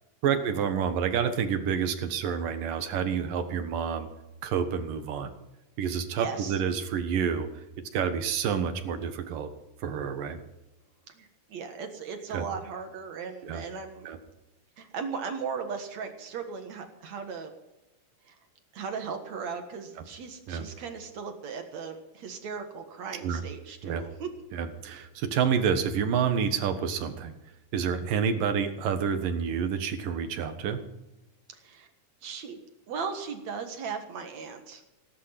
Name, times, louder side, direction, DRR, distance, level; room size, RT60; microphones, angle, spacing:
voice 1, 0.2-4.1 4.4-5.3 5.8-7.5 7.9-9.5 9.8-10.4 12.3-12.5 13.4-13.6 14.0-14.2 20.5-20.7 23.2-23.4 23.8-24.0 24.5-27.3 27.7-30.8, right 7 dB, 80° right, 8 dB, 3.1 m, -28 dB
voice 2, 6.2-6.6 11.1-14.1 14.8-17.5 18.3-18.4 18.7-24.3 31.5-31.9 32.2-32.6 32.9-34.8, right 5 dB, 60° right, 5 dB, 2.7 m, -37 dB
18.5 x 10.5 x 5.9 m, 0.97 s
omnidirectional pair, 3.9 m